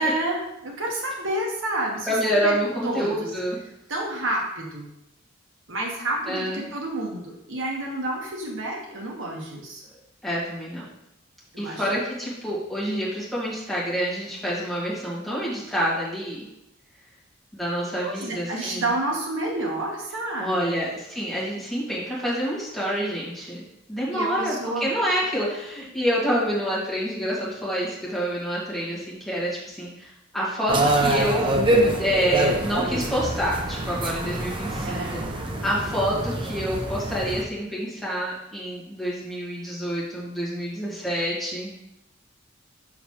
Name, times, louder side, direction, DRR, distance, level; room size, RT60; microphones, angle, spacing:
voice 1, 0.0-2.5 2.8-3.3 3.9-4.9 5.7-9.8 11.5-11.9 18.0-20.8 24.1-24.9 34.8-35.3, right 1 dB, 70° right, 0 dB, 1.1 m, -29 dB
voice 2, 2.1-3.6 6.3-6.7 10.2-10.8 11.6-16.4 17.5-18.8 20.4-23.6 23.9-31.5 31.8-35.2 35.6-41.8, equal, ahead, -8 dB, 1.9 m, -27 dB
sound 1, 30.7-37.4, right 1 dB, 25° right, 0.6 m, -25 dB
6.5 x 5.8 x 2.9 m, 0.83 s
head